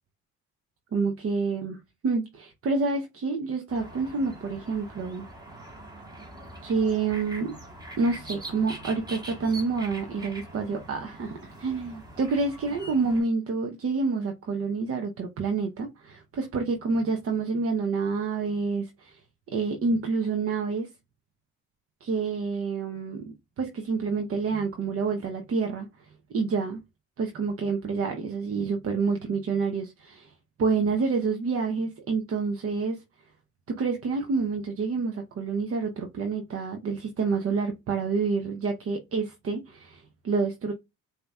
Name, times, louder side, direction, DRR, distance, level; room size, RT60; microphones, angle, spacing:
voice 1, 0.9-5.2 6.6-7.5 8.0-19.2 19.5-20.9 22.0-23.2 23.6-25.9 26.3-26.8 27.2-30.3 30.6-33.0 33.7-40.7, right 4 dB, 50° right, 0.8 m, -28 dB
sound 1, 3.7-13.2, right 1 dB, 15° right, 1.6 m, -43 dB
5.1 x 2.8 x 2.3 m
cardioid pair, 90°, 30 cm